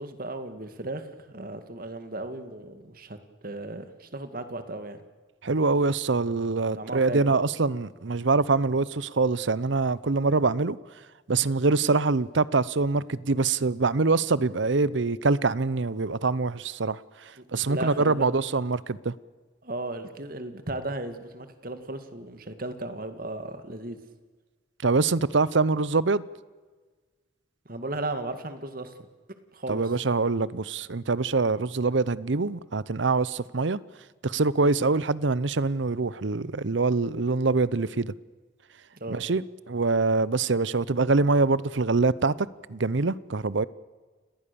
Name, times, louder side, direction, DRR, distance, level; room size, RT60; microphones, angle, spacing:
voice 1, 0.0-3.2 3.4-5.0 6.8-7.3 17.4-18.3 19.6-24.0 27.7-28.9 29.5-29.8 39.0-39.2, right 2 dB, 50° right, 9 dB, 2.2 m, -35 dB
voice 2, 5.4-10.8 11.3-17.0 17.5-19.1 24.8-26.2 29.7-33.8 34.2-38.1 39.1-42.3 42.7-43.6, right 3 dB, 75° right, 20 dB, 0.8 m, -24 dB
30.0 x 19.0 x 7.0 m, 1.4 s
head